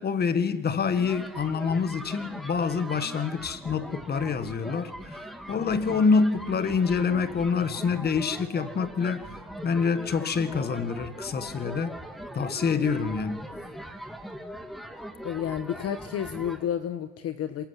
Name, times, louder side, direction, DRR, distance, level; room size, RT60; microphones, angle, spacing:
voice 1, 0.0-9.3 9.6-11.9 12.4-13.5, left 5 dB, 30° left, 1.9 m, -26 dB
sound 1, 0.9-16.7, equal, ahead, 2.2 m, -41 dB
voice 2, 15.2-17.7, left 9 dB, 45° left, 1.4 m, -31 dB
28.0 x 22.0 x 8.4 m
cardioid pair, 130°, 34 cm